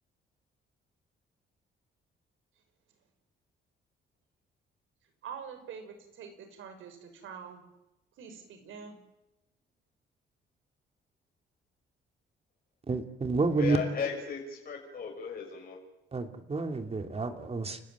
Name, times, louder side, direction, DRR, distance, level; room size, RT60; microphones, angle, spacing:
voice 1, 5.2-7.6 8.2-9.0, right 7 dB, 80° right, 7 dB, 6.0 m, -45 dB
voice 2, 12.9-13.8 16.1-17.8, right 3 dB, 30° right, 6 dB, 2.8 m, -29 dB
voice 3, 13.5-15.8, left 5 dB, 50° left, 0 dB, 6.3 m, -36 dB
30.0 x 15.0 x 9.5 m, 0.92 s
cardioid pair, 90°, 20 cm